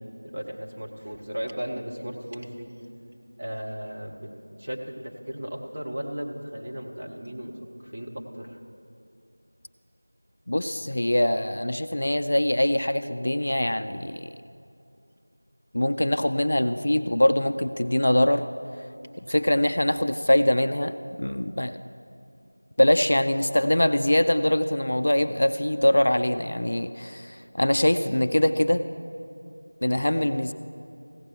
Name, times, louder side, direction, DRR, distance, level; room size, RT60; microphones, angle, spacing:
voice 1, 0.2-2.8 3.4-4.3 4.6-8.6, equal, 25° right, 0 dB, 0.9 m, -36 dB
voice 2, 10.5-14.3 15.7-18.4 19.2-21.8 22.8-28.8 29.8-30.5, left 1 dB, 40° left, 10 dB, 0.3 m, -23 dB
15.5 x 6.8 x 5.9 m, 2.6 s
figure-of-eight pair, 180°, 0 cm